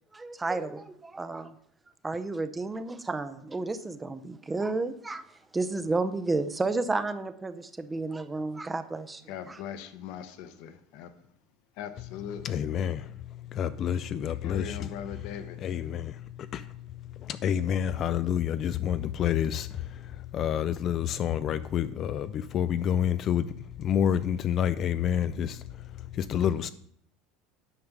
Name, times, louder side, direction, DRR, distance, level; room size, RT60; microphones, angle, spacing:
voice 1, 0.1-1.5 2.0-5.2 5.5-9.6, right 3 dB, 10° right, 0.6 m, -32 dB
voice 2, 9.3-11.1 11.8-12.6 14.4-15.6, left 8 dB, 65° left, 1.0 m, -40 dB
voice 3, 12.4-13.0 13.5-14.9 15.6-16.1 16.5-16.6 17.3-19.7 20.3-23.5 23.8-25.6 26.2-26.7, left 9 dB, 35° left, 0.3 m, -28 dB
9.6 x 5.2 x 6.0 m
supercardioid pair, 145°, 0 cm